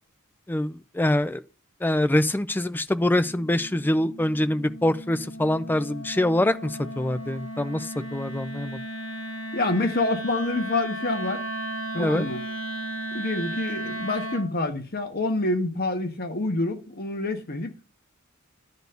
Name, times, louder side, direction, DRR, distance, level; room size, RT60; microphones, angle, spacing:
voice 1, 0.5-1.4 1.8-8.8 12.0-12.3, left 1 dB, 10° left, 0.4 m, -24 dB
Wind instrument woodwind instrument, 3.0-14.6, right 1 dB, 70° left, 1.7 m, -35 dB
voice 2, 9.5-11.4 11.9-12.4 13.1-17.7, left 2 dB, 50° left, 1.5 m, -27 dB
12.0 x 4.2 x 6.8 m
head